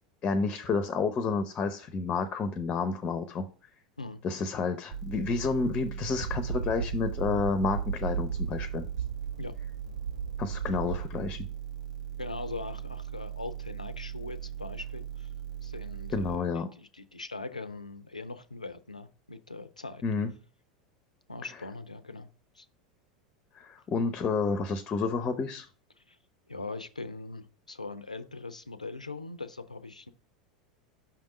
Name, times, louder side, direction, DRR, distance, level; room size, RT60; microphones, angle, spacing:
voice 1, 0.2-3.5 4.2-8.9 10.4-11.5 16.1-16.7 20.0-20.3 23.6-25.7, left 4 dB, 30° left, 0.7 m, -30 dB
sound 1, 4.9-16.4, right 10 dB, 65° right, 1.0 m, -39 dB
sound 2, 6.2-11.6, right 6 dB, 85° right, 0.4 m, -36 dB
voice 2, 12.2-15.3 15.6-20.0 21.3-22.3 22.5-22.7 26.1-26.2 26.5-30.1, left 3 dB, 90° left, 0.5 m, -41 dB
5.8 x 3.6 x 4.9 m
figure-of-eight pair, 85°, 4 cm